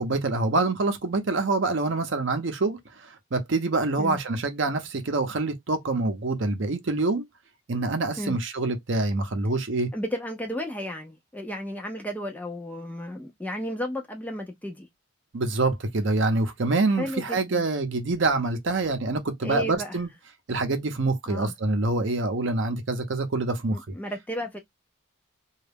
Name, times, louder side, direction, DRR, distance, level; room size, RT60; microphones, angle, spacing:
voice 1, 0.0-7.2 7.7-9.9 15.3-20.1 20.5-23.8, right 3 dB, 60° right, 0.6 m, -26 dB
voice 2, 9.9-14.9 17.0-17.6 19.4-20.0 21.3-21.5 23.7-24.6, equal, 5° left, 0.4 m, -33 dB
2.3 x 2.0 x 3.2 m
head